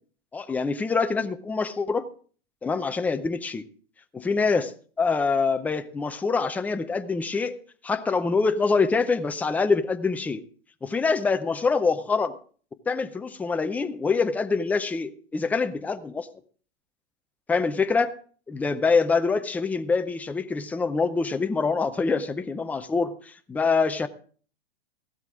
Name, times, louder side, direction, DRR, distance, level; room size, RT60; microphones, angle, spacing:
voice 1, 0.3-2.1 2.6-3.6 4.1-4.7 5.0-7.6 7.8-10.4 10.8-12.3 12.9-16.3 17.5-18.2 18.5-24.1, left 4 dB, 5° left, 9 dB, 0.5 m, -25 dB
15.5 x 12.5 x 3.6 m, 0.44 s
hypercardioid pair, 135°, 35 cm